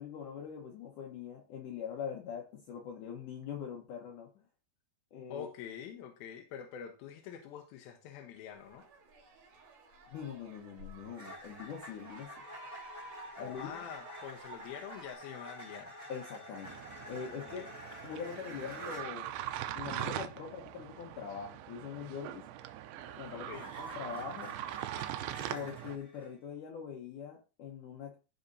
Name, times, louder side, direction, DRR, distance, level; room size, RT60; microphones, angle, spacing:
voice 1, 0.0-4.4 5.1-5.5 10.1-12.3 13.4-13.7 16.1-16.7 17.1-17.6 18.0-19.3 19.7-22.4 23.2-24.5 25.5-28.2, left 7 dB, 65° left, 0 dB, 2.4 m, -43 dB
voice 2, 5.3-8.9 13.4-15.9 17.6-17.7 23.3-23.7, left 8 dB, 85° left, 3 dB, 2.8 m, -46 dB
sound 1, 8.5-15.1, right 2 dB, 55° right, 3.8 m, -53 dB
sound 2, 11.1-19.1 22.5-26.3, equal, 20° left, 0.4 m, -49 dB
sound 3, 16.6-26.0, right 12 dB, 85° right, 2.5 m, -42 dB
15.0 x 5.1 x 2.7 m, 0.31 s
omnidirectional pair, 4.3 m